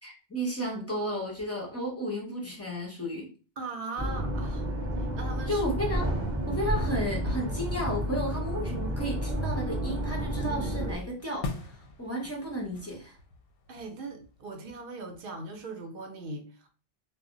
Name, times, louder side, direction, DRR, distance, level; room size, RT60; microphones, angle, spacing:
voice 1, 0.0-3.3 5.5-6.1 6.5-13.2, equal, 20° left, 0.5 m, -33 dB
voice 2, 3.6-4.7 5.0-5.6 13.7-16.7, right 3 dB, 60° right, 0.7 m, -39 dB
sound 1, 4.0-11.0, equal, 15° right, 0.8 m, -31 dB
Explosion, 7.2-9.1, left 1 dB, 90° right, 0.9 m, -41 dB
sound 2, 10.3-15.6, left 3 dB, 65° left, 0.7 m, -43 dB
2.1 x 2.0 x 3.7 m
omnidirectional pair, 1.2 m